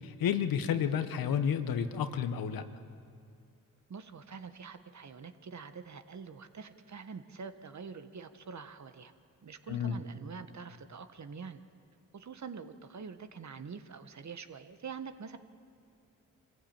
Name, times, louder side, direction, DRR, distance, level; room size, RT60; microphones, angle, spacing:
voice 1, 0.2-2.7 9.7-10.0, left 8 dB, 85° left, 10 dB, 1.1 m, -31 dB
voice 2, 3.9-9.1 9.4-11.6 12.1-15.4, right 5 dB, 55° right, 9 dB, 1.5 m, -45 dB
25.5 x 15.5 x 8.9 m, 2.3 s
supercardioid pair, 50°, 34 cm